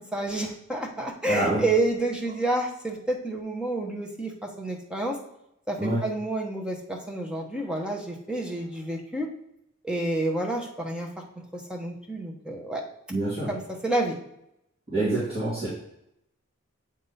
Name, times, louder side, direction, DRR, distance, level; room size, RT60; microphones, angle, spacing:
voice 1, 0.1-5.2 5.7-9.3 9.8-11.1 11.5-12.8 13.5-14.2, right 2 dB, 5° right, 0 dB, 0.8 m, -29 dB
voice 2, 1.2-1.6 5.8-6.0 13.1-13.5 14.9-15.7, right 2 dB, 25° right, -11 dB, 2.1 m, -26 dB
7.9 x 3.6 x 4.1 m, 0.81 s
head